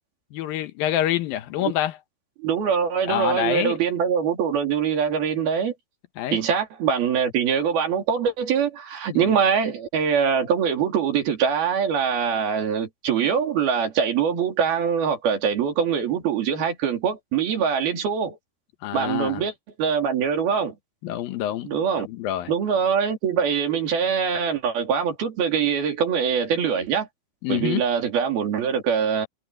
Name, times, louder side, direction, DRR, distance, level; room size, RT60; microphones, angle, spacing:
voice 1, 0.3-2.0 3.1-3.8 6.2-6.4 9.1-9.3 18.8-19.5 21.0-21.7 22.1-22.5 27.4-27.8, left 12 dB, 75° left, 2.8 m, -26 dB
voice 2, 2.4-5.7 6.3-18.4 18.9-19.5 19.8-20.8 21.6-22.1 22.5-27.1 27.5-29.3, right 7 dB, 85° right, 5.1 m, -23 dB
omnidirectional pair, 4.2 m